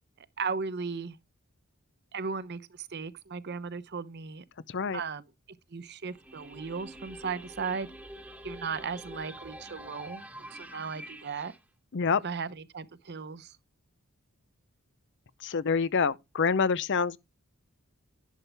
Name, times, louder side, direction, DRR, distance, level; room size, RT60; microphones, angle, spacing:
voice 1, 0.4-1.2 2.1-4.4 4.9-5.2 5.7-7.9 8.4-10.2 10.5-11.5 12.2-13.5, right 5 dB, 50° right, 0.7 m, -36 dB
voice 2, 4.7-5.0 11.9-12.2 15.4-17.2, left 5 dB, 55° left, 0.6 m, -26 dB
sound 1, 6.1-11.6, equal, 5° right, 1.0 m, -46 dB
11.0 x 7.2 x 3.4 m
head